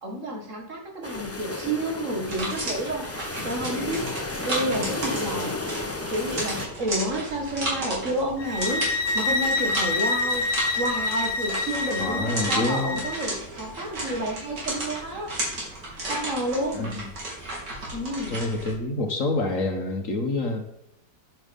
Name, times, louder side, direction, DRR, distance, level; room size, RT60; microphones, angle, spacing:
voice 1, 0.0-4.1 4.4-5.6 5.9-8.9 9.1-10.5 10.8-15.3 16.1-17.0 17.9-18.4, right 1 dB, 45° right, 1 dB, 2.1 m, -30 dB
sound 1, 1.0-6.7, left 2 dB, 15° left, 0.4 m, -33 dB
sound 2, 2.2-18.7, right 1 dB, 75° right, 3.7 m, -34 dB
sound 3, 8.4-13.3, left 3 dB, 70° left, 1.3 m, -27 dB
voice 2, 12.0-13.0 16.7-17.1 18.3-20.6, left 2 dB, 50° left, 4 dB, 1.5 m, -27 dB
9.3 x 8.0 x 5.3 m, 0.75 s
omnidirectional pair, 1.8 m